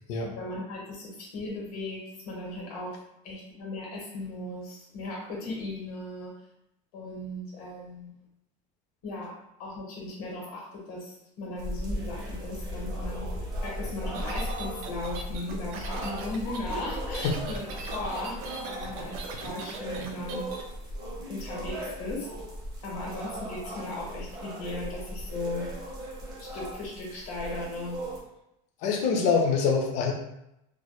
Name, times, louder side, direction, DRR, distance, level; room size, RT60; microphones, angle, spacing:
voice 1, 0.2-3.0 3.2-6.3 6.9-8.1 9.0-9.3 9.6-13.3 13.6-18.4 18.6-20.4 21.3-22.3 22.8-25.7 26.4-28.0 29.0-29.3, left 2 dB, 80° left, -3 dB, 0.8 m, -37 dB
sound 1, 11.6-28.2, equal, 20° right, 0.5 m, -37 dB
sound 2, 14.1-20.6, right 4 dB, 75° right, 0.4 m, -40 dB
voice 2, 28.8-30.1, left 5 dB, 40° left, 2 dB, 0.4 m, -25 dB
2.1 x 2.1 x 2.9 m, 0.84 s
cardioid pair, 180°, 19 cm